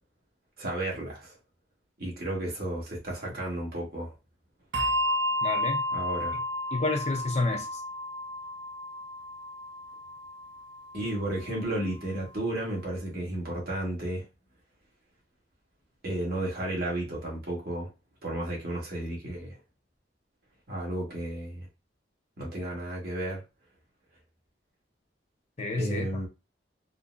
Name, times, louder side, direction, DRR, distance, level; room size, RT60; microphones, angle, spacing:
voice 1, 0.6-1.4 2.0-4.1 5.9-6.4 10.9-14.2 16.0-17.9 18.2-19.6 20.7-21.7 22.4-23.4 25.8-26.3, right 1 dB, 55° right, 1.3 m, -33 dB
Bell, 4.7-11.6, left 1 dB, 85° right, 0.4 m, -32 dB
voice 2, 5.4-5.8 6.7-7.8 25.6-26.3, left 3 dB, 35° left, 0.6 m, -30 dB
3.8 x 2.0 x 2.4 m
head